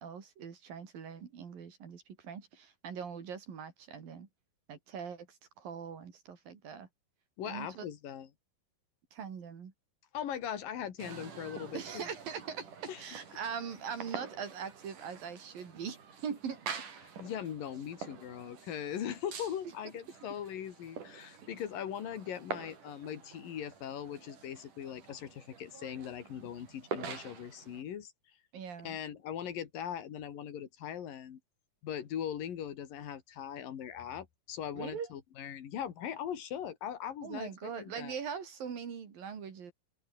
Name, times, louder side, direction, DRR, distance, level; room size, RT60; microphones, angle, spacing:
voice 1, 0.0-4.3 4.7-6.9 7.5-7.9 9.1-9.7 11.7-16.6 28.5-29.0 34.7-35.1 37.2-39.7, right 7 dB, 80° right, 5.2 m, -42 dB
voice 2, 7.4-8.3 10.1-12.1 12.9-13.0 17.0-28.1 28.8-31.4 31.8-38.1, left 9 dB, 75° left, 4.1 m, -40 dB
sound 1, 11.0-27.8, right 6 dB, 65° right, 5.2 m, -47 dB
open air
omnidirectional pair, 4.0 m